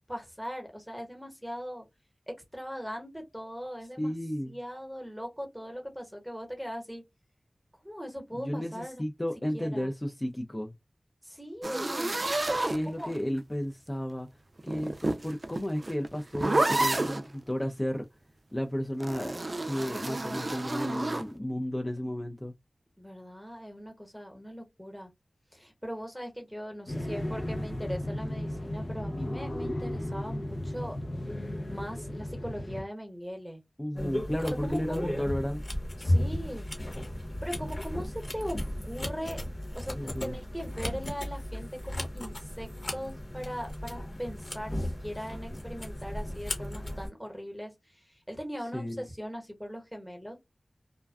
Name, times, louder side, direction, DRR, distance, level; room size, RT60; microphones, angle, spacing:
voice 1, 0.1-1.9 2.3-4.1 4.4-7.0 7.8-9.0 9.5-9.9 11.2-12.3 13.0-13.1 23.0-25.1 25.5-31.0 31.7-33.6 34.6-35.1 36.0-36.7 37.4-38.6 38.8-39.4 39.7-50.4, equal, ahead, 1.0 m, -40 dB
voice 2, 4.0-4.6 8.3-10.7 12.7-14.3 14.6-18.1 18.5-19.4 19.6-22.5 33.8-35.6 39.9-40.4 48.7-49.0, equal, 25° left, 0.4 m, -33 dB
sound 1, 11.6-13.4 14.6-17.3 19.0-21.3, right 2 dB, 50° right, 0.3 m, -30 dB
sound 2, 26.9-32.8, left 1 dB, 75° left, 0.7 m, -35 dB
sound 3, 34.0-47.1, left 1 dB, 50° left, 1.0 m, -35 dB
2.4 x 2.2 x 2.3 m
wide cardioid pair, 45°, 0 cm